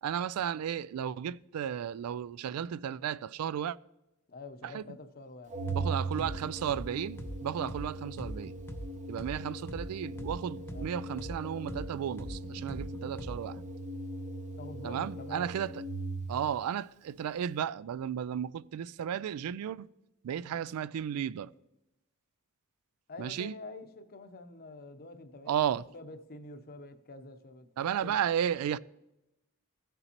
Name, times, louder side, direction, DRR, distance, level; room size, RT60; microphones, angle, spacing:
voice 1, 0.0-3.8 4.6-4.8 5.7-8.6 9.1-13.6 14.8-15.8 16.3-19.9 20.2-21.5 23.2-23.5 25.5-25.8 27.8-28.8, right 9 dB, 90° right, 0.3 m, -34 dB
voice 2, 4.3-5.9 10.7-10.9 14.5-15.5 23.1-27.7 28.0-28.2, left 2 dB, 45° left, 0.7 m, -47 dB
Organ, 5.5-16.5, right 2 dB, 35° right, 0.7 m, -40 dB
sound 1, 5.7-5.9 6.2-9.9 10.2-13.6, equal, 10° left, 0.5 m, -42 dB
15.5 x 6.9 x 2.9 m
head